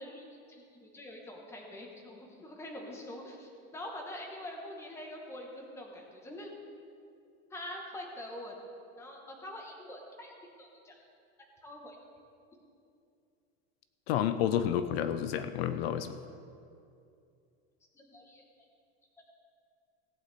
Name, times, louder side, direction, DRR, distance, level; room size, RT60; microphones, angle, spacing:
voice 1, 0.0-6.5 7.5-8.5 9.0-11.1 11.6-12.0 17.9-18.4, left 1 dB, 10° left, 0 dB, 1.1 m, -45 dB
voice 2, 14.1-16.2, left 10 dB, 70° left, 10 dB, 0.7 m, -30 dB
17.5 x 8.4 x 4.1 m, 2.5 s
supercardioid pair, 180°, 31 cm